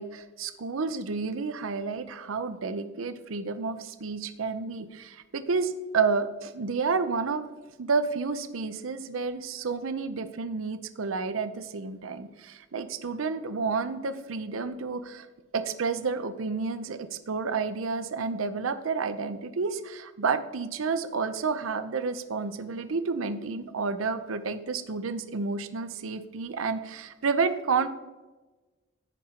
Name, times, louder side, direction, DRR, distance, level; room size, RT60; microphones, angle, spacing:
voice 1, 0.0-7.5 7.8-15.3 15.5-27.9, right 4 dB, 80° right, 10 dB, 0.6 m, -30 dB
15.0 x 5.1 x 2.9 m, 1.2 s
head